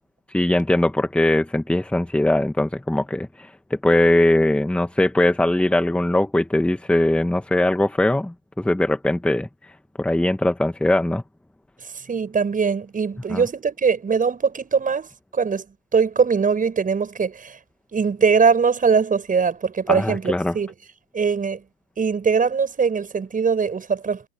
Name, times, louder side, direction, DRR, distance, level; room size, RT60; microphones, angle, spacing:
voice 1, 0.3-9.7 10.0-11.2 13.3-13.4 19.9-20.5, left 1 dB, 5° left, 1.9 m, -21 dB
voice 2, 11.9-15.6 15.9-17.6 17.9-20.7 21.1-21.6 22.0-24.3, right 5 dB, 20° right, 7.2 m, -21 dB
hypercardioid pair, 100°, 45 cm